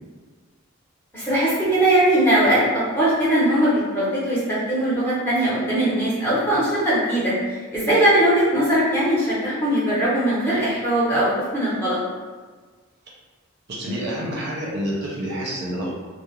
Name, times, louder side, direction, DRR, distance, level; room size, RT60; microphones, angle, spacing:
voice 1, 1.1-12.0, right 1 dB, 10° left, -10 dB, 0.7 m, -20 dB
voice 2, 13.7-15.9, equal, 50° right, -5 dB, 0.5 m, -28 dB
2.3 x 2.0 x 3.0 m, 1.4 s
head